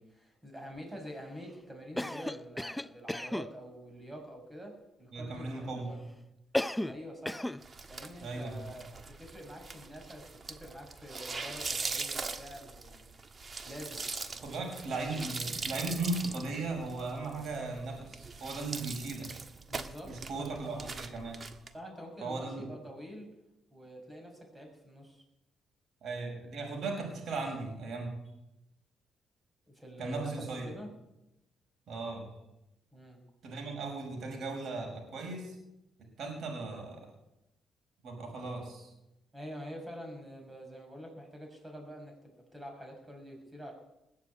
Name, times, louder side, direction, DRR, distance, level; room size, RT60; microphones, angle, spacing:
voice 1, 0.0-6.0 6.8-7.4 7.9-13.1 13.6-14.0 19.7-20.9 21.7-23.3 23.7-25.2 29.7-30.9 32.9-33.2 39.3-42.1 42.5-43.7, equal, 15° right, 2 dB, 6.7 m, -46 dB
Cough, 2.0-3.5 6.5-7.0 7.3-7.6, left 1 dB, 5° left, 0.5 m, -34 dB
voice 2, 5.1-5.9 8.2-8.6 14.4-19.3 20.0-21.4 22.2-22.7 26.0-28.1 30.0-30.7 31.9-32.3 33.4-35.6 36.2-37.0 38.0-38.9, right 3 dB, 65° right, 2 dB, 5.6 m, -37 dB
sound 1, 7.6-21.7, right 4 dB, 35° right, 1.5 m, -41 dB
20.0 x 7.5 x 8.5 m, 0.90 s
cardioid pair, 90°, 0 cm